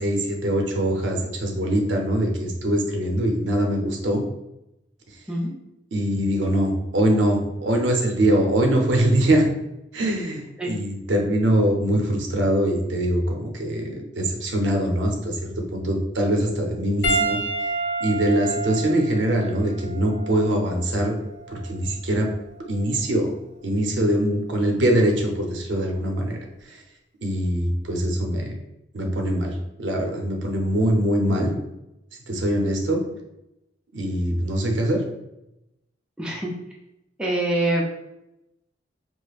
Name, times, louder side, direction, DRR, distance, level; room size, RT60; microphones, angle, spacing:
voice 1, 0.0-4.2 5.9-9.5 9.9-17.4 18.0-21.2 21.5-22.3 22.7-23.3 23.6-26.4 26.7-26.8 27.2-28.6 28.9-31.5 32.3-33.0 33.9-35.1, right 1 dB, 85° right, 1 dB, 0.7 m, -23 dB
Piano, 17.0-21.7 22.6-22.8 24.8-24.9, right 2 dB, 60° left, 0.6 m, -29 dB
voice 2, 36.2-36.5 37.2-37.9, right 1 dB, 5° right, -3 dB, 0.5 m, -24 dB
4.9 x 2.1 x 2.4 m, 0.88 s
head